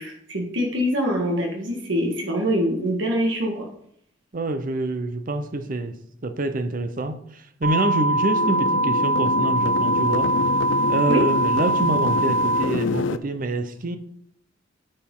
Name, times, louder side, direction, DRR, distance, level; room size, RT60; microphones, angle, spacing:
voice 1, 0.0-3.5 11.1-11.2, equal, 70° right, 0 dB, 1.7 m, -24 dB
voice 2, 4.3-5.9 6.2-10.3 10.9-14.0, right 2 dB, 45° right, 9 dB, 0.7 m, -26 dB
sound 1, 7.6-12.6, right 1 dB, 55° left, 1.7 m, -22 dB
sound 2, 8.1-13.2, left 4 dB, 75° left, 0.5 m, -28 dB
9.9 x 6.6 x 3.8 m, 0.70 s
head